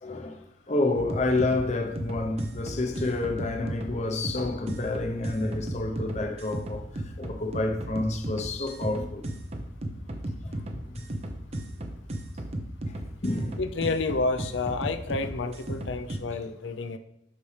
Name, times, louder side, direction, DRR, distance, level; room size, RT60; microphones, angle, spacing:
voice 1, 0.0-0.4 0.7-9.2 10.4-10.5 10.9-11.1 13.2-13.6, left 2 dB, 35° left, 0.7 m, -29 dB
sound 1, 1.0-16.2, right 1 dB, 35° right, 0.7 m, -36 dB
voice 2, 13.6-17.0, left 3 dB, 70° left, 0.6 m, -30 dB
8.4 x 6.0 x 3.3 m
head